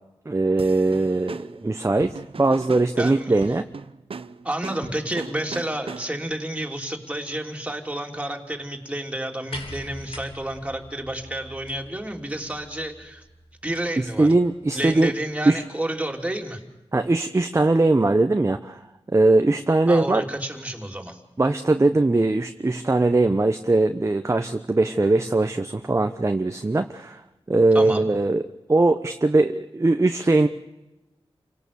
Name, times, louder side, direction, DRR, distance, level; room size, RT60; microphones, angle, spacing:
voice 1, 0.3-3.6 14.0-15.1 15.5-15.6 16.9-18.8 19.1-20.2 21.4-27.2 27.5-28.4 28.7-30.5, right 2 dB, 30° right, 7 dB, 1.0 m, -20 dB
sound 1, 0.6-6.4, right 5 dB, 65° right, 0.8 m, -39 dB
voice 2, 3.0-3.4 4.4-13.2 13.6-14.3 14.7-16.6 19.9-21.2 27.7-28.1, right 1 dB, 10° right, 2 dB, 3.4 m, -30 dB
sound 2, 9.5-15.1 16.2-16.3, left 1 dB, 65° left, 3.3 m, -44 dB
28.5 x 18.0 x 7.1 m, 0.99 s
wide cardioid pair, 65°, 10 cm